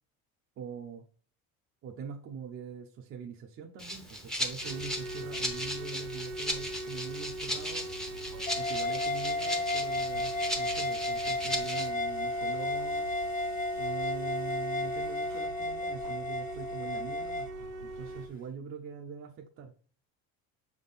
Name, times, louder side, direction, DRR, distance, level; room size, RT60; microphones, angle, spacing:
voice 1, 0.6-1.0 1.8-7.9 8.5-13.1 13.8-19.7, right 6 dB, 40° right, 2 dB, 0.7 m, -43 dB
Rattle (instrument), 3.8-11.9, equal, ahead, 0.8 m, -37 dB
sound 1, 4.6-18.3, right 1 dB, 80° right, 1.3 m, -41 dB
sound 2, 8.5-17.5, left 2 dB, 30° left, 0.5 m, -33 dB
6.8 x 3.7 x 4.0 m, 0.39 s
cardioid pair, 155°, 31 cm